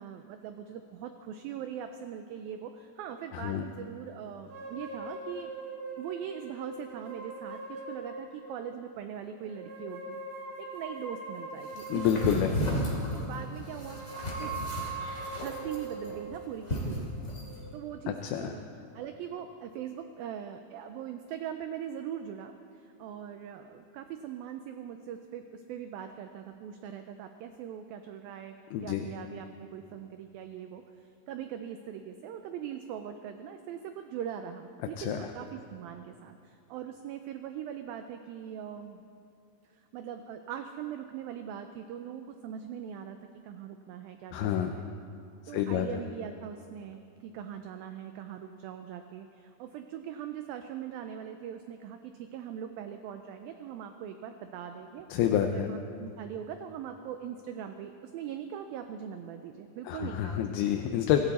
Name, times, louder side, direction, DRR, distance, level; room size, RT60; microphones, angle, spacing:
voice 1, 0.0-5.5 6.0-10.2 10.6-12.5 13.1-14.0 14.4-14.5 15.4-17.1 17.7-18.6 18.9-28.5 28.8-39.0 39.7-43.2 43.4-44.9 45.5-55.1 55.4-60.5, right 9 dB, 85° right, 7 dB, 2.0 m, -41 dB
voice 2, 3.3-3.6 11.9-12.6 18.1-18.5 28.7-29.0 35.0-35.2 44.3-44.7 45.5-45.9 55.1-55.7 59.9-61.2, left 10 dB, 80° left, 5 dB, 2.5 m, -28 dB
sound 1, 4.5-8.7 9.4-12.8 13.7-18.1, right 3 dB, 55° right, 4.2 m, -42 dB
sound 2, 11.7-17.5, equal, 20° left, 2.7 m, -34 dB
25.0 x 14.0 x 4.2 m, 2.6 s
omnidirectional pair, 4.9 m